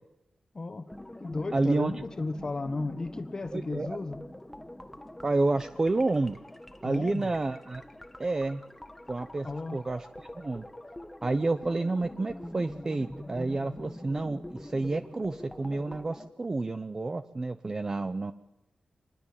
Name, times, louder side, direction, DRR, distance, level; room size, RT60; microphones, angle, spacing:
voice 1, 0.5-0.9 1.2-4.2 6.8-7.3 9.4-9.8, left 3 dB, 30° left, 10 dB, 1.3 m, -34 dB
sound 1, 0.9-16.3, left 1 dB, 10° left, 1.2 m, -44 dB
voice 2, 1.5-1.9 3.5-4.0 5.2-6.4 6.8-7.8 8.2-8.6 9.1-9.5 9.7-10.1 10.3-10.7 11.2-18.3, right 2 dB, 25° right, 11 dB, 0.8 m, -29 dB
25.0 x 20.5 x 7.4 m, 0.89 s
wide cardioid pair, 160°, 2 cm